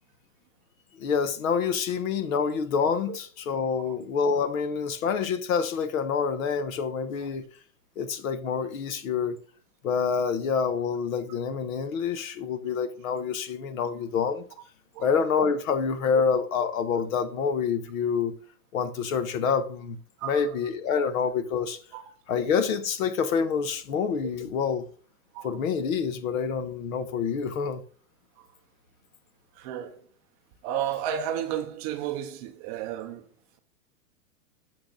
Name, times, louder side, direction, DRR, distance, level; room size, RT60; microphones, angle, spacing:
voice 1, 1.0-7.5 8.0-9.4 9.8-14.4 15.0-18.3 18.7-20.0 20.2-21.8 22.3-24.9 25.4-27.8, left 6 dB, 65° left, 1.2 m, -27 dB
voice 2, 29.6-30.0 30.6-33.3, right 10 dB, 25° right, 0.5 m, -32 dB
6.9 x 6.4 x 3.8 m
hypercardioid pair, 150°, 44 cm